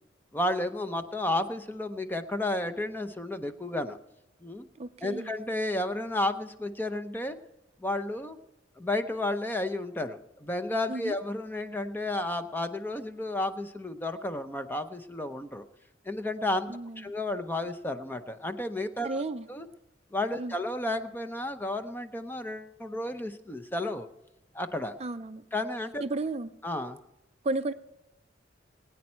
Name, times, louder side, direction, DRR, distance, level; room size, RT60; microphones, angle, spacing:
voice 1, 0.3-4.0 4.4-4.7 5.0-7.4 7.8-8.4 8.8-15.7 16.0-19.2 19.5-19.7 20.1-24.1 24.5-25.0 25.5-26.0 26.6-27.0, left 1 dB, 10° left, 8 dB, 0.7 m, -32 dB
voice 2, 4.8-5.3 10.9-11.1 16.7-17.1 19.0-19.5 20.4-20.5 25.0-25.4 26.0-26.5 27.4-27.7, right 2 dB, 35° right, 10 dB, 0.5 m, -33 dB
21.5 x 9.5 x 4.4 m, 0.93 s
head